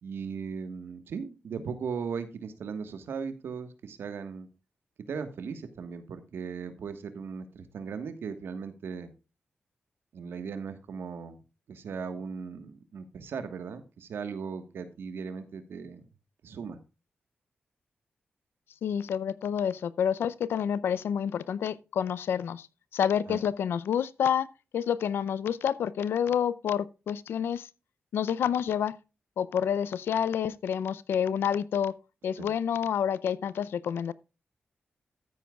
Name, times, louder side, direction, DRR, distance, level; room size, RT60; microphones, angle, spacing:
voice 1, 0.0-4.5 5.1-9.1 10.1-11.4 11.7-16.0 16.4-16.8 23.3-23.4 32.4-32.5, right 6 dB, 85° right, 1.4 m, -38 dB
voice 2, 18.8-22.7 22.9-24.5 24.7-27.7 28.1-28.9 29.4-31.9 32.2-34.1, left 8 dB, 90° left, 0.5 m, -28 dB
13.5 x 9.3 x 2.3 m
cardioid pair, 55°, 4 cm